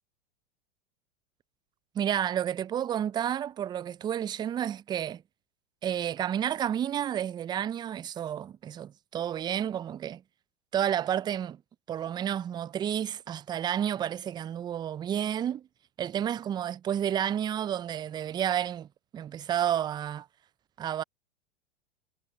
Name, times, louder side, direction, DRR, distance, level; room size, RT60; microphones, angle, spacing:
voice 1, 1.9-5.2 5.8-10.2 10.7-11.6 11.9-15.7 16.0-20.3 20.8-21.0, right 10 dB, 15° right, 0.3 m, -31 dB
hypercardioid pair, 95°, 32 cm